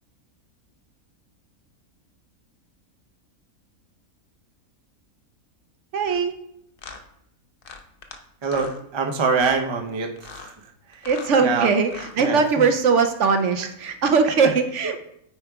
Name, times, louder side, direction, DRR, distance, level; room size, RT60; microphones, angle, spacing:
voice 1, 5.9-6.3 11.1-15.0, right 5 dB, 65° right, 7 dB, 0.8 m, -20 dB
sound 1, 6.0-6.2 6.8-7.0 7.6-8.2 8.4-8.8 9.3-9.6 10.2-10.5 10.9-11.4 11.8-12.2, left 5 dB, 55° left, 0.7 m, -41 dB
voice 2, 8.4-10.5 10.9-11.1 11.4-11.7 12.2-12.6 14.4-14.5 14.8-14.9, right 5 dB, 40° right, 3 dB, 0.4 m, -25 dB
8.6 x 4.6 x 3.5 m, 0.73 s
omnidirectional pair, 1.5 m